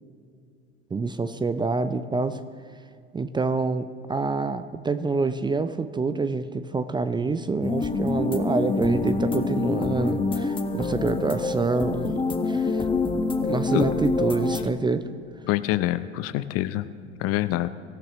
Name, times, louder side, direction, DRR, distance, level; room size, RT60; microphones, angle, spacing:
voice 1, 0.9-2.4 3.1-12.8 13.4-15.1, right 4 dB, 15° right, 11 dB, 0.6 m, -27 dB
sound 1, 7.6-14.7, left 3 dB, 15° left, 1.5 m, -26 dB
voice 2, 15.5-16.9 17.2-17.7, left 15 dB, 45° left, 14 dB, 0.7 m, -25 dB
24.5 x 15.0 x 3.1 m, 2.3 s
figure-of-eight pair, 80°, 34 cm